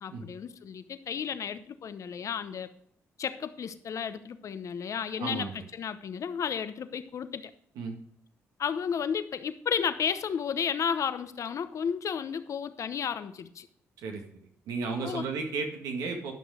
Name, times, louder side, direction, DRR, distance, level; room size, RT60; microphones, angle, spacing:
voice 1, 0.0-2.7 3.2-7.5 8.6-13.7 15.0-15.2, left 7 dB, 60° left, 12 dB, 0.8 m, -33 dB
voice 2, 5.2-5.6 7.7-8.0 14.0-14.2 14.7-16.3, right 4 dB, 85° right, 3 dB, 1.8 m, -33 dB
11.5 x 6.1 x 4.9 m, 0.69 s
supercardioid pair, 65°, 6 cm